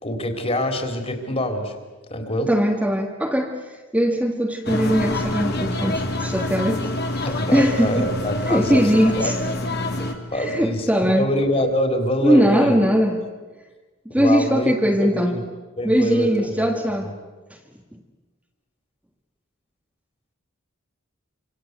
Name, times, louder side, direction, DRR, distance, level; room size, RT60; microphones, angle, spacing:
voice 1, 0.0-1.7 2.1-2.5 7.2-8.9 9.2-9.3 10.3-12.8 14.2-14.7 15.0-15.4 15.8-16.7, equal, 30° left, 5 dB, 3.6 m, -25 dB
voice 2, 2.5-3.6 3.9-6.9 7.2-8.1 8.5-9.4 10.0-11.3 12.2-13.2 14.0-15.4 15.8-17.1, equal, 5° right, 1 dB, 1.7 m, -20 dB
sound 1, 4.7-10.1, left 1 dB, 50° left, 2.9 m, -26 dB
27.0 x 26.5 x 8.1 m, 1.3 s
head